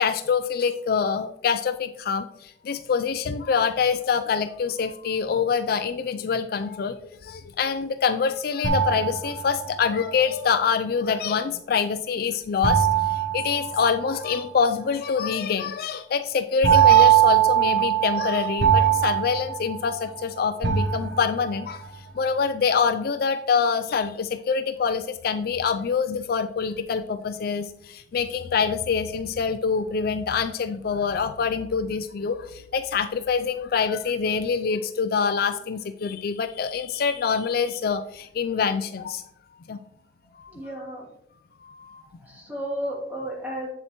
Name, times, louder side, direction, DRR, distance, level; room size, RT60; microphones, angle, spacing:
voice 1, 0.0-7.0 7.2-21.8 22.2-39.2 39.7-39.8 40.4-40.5 41.6-42.0, left 6 dB, 55° left, 10 dB, 0.4 m, -25 dB
Church Bells In the Distance, 8.6-9.9 12.6-14.3 16.6-20.2 20.6-21.6, right 10 dB, 75° right, 1.1 m, -21 dB
voice 2, 40.5-41.1 42.2-43.7, equal, 10° right, -5 dB, 2.7 m, -33 dB
8.0 x 7.3 x 3.0 m, 0.76 s
head